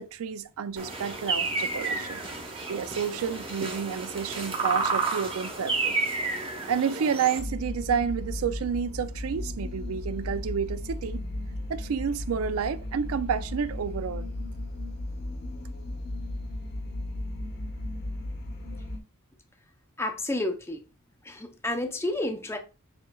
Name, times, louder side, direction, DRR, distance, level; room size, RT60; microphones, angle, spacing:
voice 1, 0.0-2.2 2.7-6.0 6.7-11.2 11.7-14.3, right 7 dB, 75° right, 0.4 m, -30 dB
sound 1, 0.8-7.4, right 3 dB, 25° right, 1.0 m, -31 dB
sound 2, 7.4-19.0, left 1 dB, 45° left, 0.9 m, -35 dB
voice 2, 20.0-20.8 21.2-22.6, left 1 dB, 10° left, 0.6 m, -30 dB
7.0 x 3.1 x 2.3 m
head